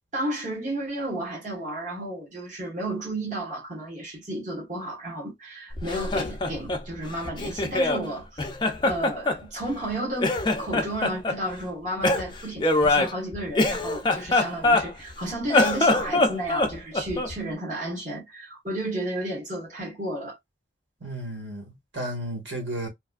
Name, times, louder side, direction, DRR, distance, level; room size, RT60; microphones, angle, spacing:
voice 1, 0.1-20.4, right 1 dB, 40° right, 1.5 m, -32 dB
Laughter, 5.7-8.0 8.4-9.9 10.2-11.4 12.0-15.1 15.4-17.4, left 2 dB, 25° left, 0.4 m, -24 dB
voice 2, 21.0-22.9, right 1 dB, 90° right, 1.7 m, -33 dB
3.2 x 2.6 x 2.4 m
head